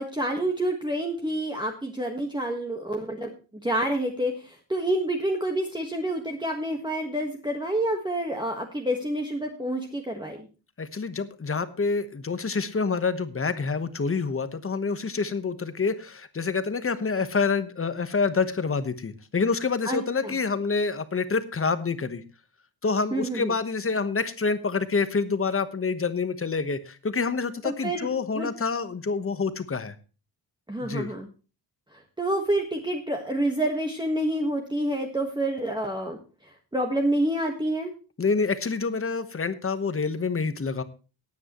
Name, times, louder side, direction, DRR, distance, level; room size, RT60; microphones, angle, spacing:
voice 1, 0.0-3.3 3.6-10.5 19.8-20.3 23.1-23.5 27.6-28.1 28.3-28.5 30.7-31.3 32.2-36.2 36.7-37.9, right 1 dB, 10° right, 2 dB, 1.4 m, -28 dB
voice 2, 10.8-22.2 22.8-29.9 30.8-31.1 38.2-40.8, left 4 dB, 30° left, 11 dB, 1.1 m, -27 dB
18.0 x 9.1 x 3.0 m, 0.33 s
wide cardioid pair, 165°, 44 cm